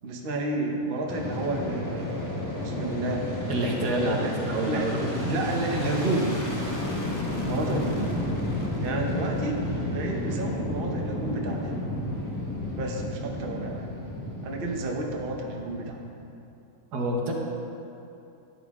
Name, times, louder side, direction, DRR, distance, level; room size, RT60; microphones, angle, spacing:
voice 1, 0.0-2.2 2.6-3.3 3.9-4.3 4.6-4.8 5.2-6.3 7.4-8.1 8.8-9.6 9.9-11.6 12.7-13.9 14.4-16.0, right 2 dB, 40° right, 1 dB, 1.0 m, -31 dB
Fixed-wing aircraft airplane, 1.1-16.3, left 1 dB, 10° left, 1.1 m, -32 dB
voice 2, 3.5-5.3 16.9-17.3, right 1 dB, 70° right, -1 dB, 1.8 m, -28 dB
13.0 x 9.3 x 3.6 m, 2.7 s
omnidirectional pair, 1.8 m